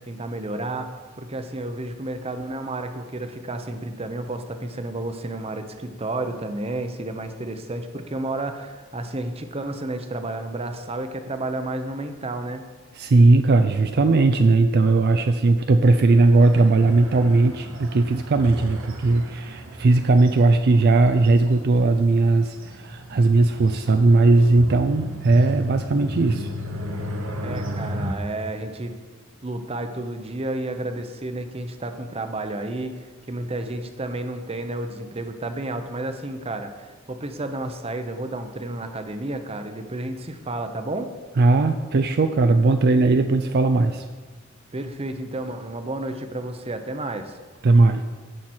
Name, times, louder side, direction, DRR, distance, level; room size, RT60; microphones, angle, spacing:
voice 1, 0.1-0.9 1.2-12.6 27.4-28.9 29.4-32.9 33.3-41.1 44.7-47.4, right 2 dB, 30° right, 7 dB, 0.8 m, -31 dB
voice 2, 12.9-26.5 41.4-44.0 47.6-48.0, right 3 dB, 50° right, 7 dB, 0.4 m, -18 dB
sound 1, 15.8-28.1, equal, 70° right, 1.2 m, -34 dB
15.5 x 5.9 x 4.4 m, 1.4 s
head